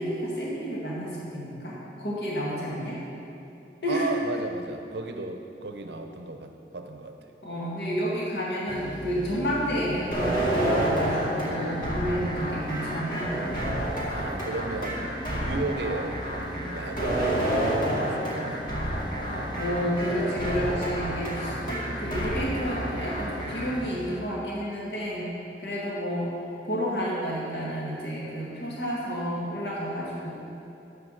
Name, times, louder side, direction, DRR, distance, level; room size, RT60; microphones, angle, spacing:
voice 1, 0.0-3.0 3.8-4.1 7.4-13.5 19.6-25.3 25.6-26.3 26.6-30.4, equal, 65° left, -6 dB, 1.7 m, -30 dB
voice 2, 3.9-7.1 14.0-15.1 15.4-16.2 16.5-18.6, right 2 dB, 70° right, 5 dB, 0.7 m, -34 dB
sound 1, 8.7-24.2, left 1 dB, 25° left, 0.5 m, -39 dB
sound 2, 10.1-23.7, right 1 dB, 50° left, 1.9 m, -29 dB
9.7 x 4.9 x 6.4 m, 2.8 s
head